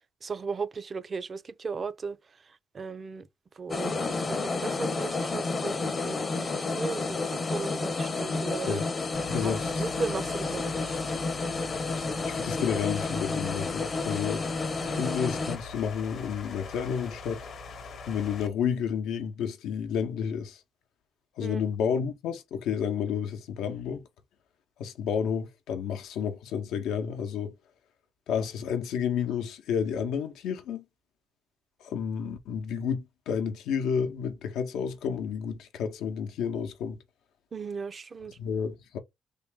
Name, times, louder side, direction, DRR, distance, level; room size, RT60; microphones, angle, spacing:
voice 1, 0.2-3.3 3.6-8.8 9.4-11.0 14.8-15.1 21.4-21.6 37.5-38.4, right 4 dB, 40° right, 0.4 m, -36 dB
sound 1, 3.7-15.6, left 3 dB, 35° left, 0.6 m, -31 dB
sound 2, 9.1-18.5, left 4 dB, 65° left, 0.9 m, -42 dB
voice 2, 9.3-9.8 12.0-14.5 14.9-17.4 18.1-20.6 21.4-24.0 24.8-27.5 28.3-30.8 31.8-37.0 38.4-39.0, left 7 dB, 90° left, 0.6 m, -31 dB
3.5 x 2.2 x 3.5 m
cardioid pair, 90°, 0 cm